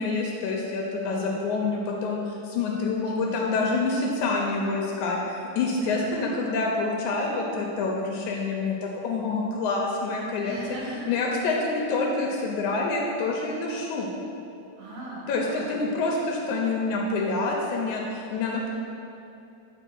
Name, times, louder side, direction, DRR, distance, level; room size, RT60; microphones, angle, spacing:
voice 1, 0.0-10.6 11.1-14.1 15.3-18.7, left 3 dB, 80° left, -1 dB, 2.0 m, -27 dB
voice 2, 1.0-1.5 3.1-3.6 5.8-6.3 10.4-11.1 14.8-15.8, right 1 dB, 55° right, -5 dB, 2.2 m, -40 dB
8.8 x 4.6 x 4.6 m, 2.7 s
omnidirectional pair, 3.7 m